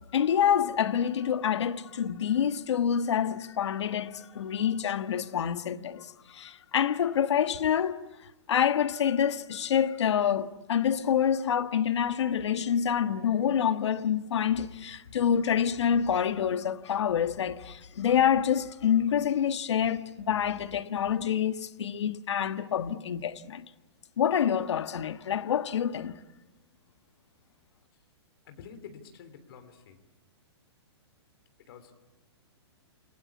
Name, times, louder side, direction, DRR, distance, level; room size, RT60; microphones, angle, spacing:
voice 1, 0.1-6.0 6.3-8.0 8.5-23.6 24.2-26.2, left 8 dB, 80° left, 1.5 m, -27 dB
voice 2, 28.5-30.0 31.7-31.9, left 6 dB, 60° left, 3.4 m, -48 dB
29.0 x 20.0 x 8.4 m
hypercardioid pair, 155°, 15 cm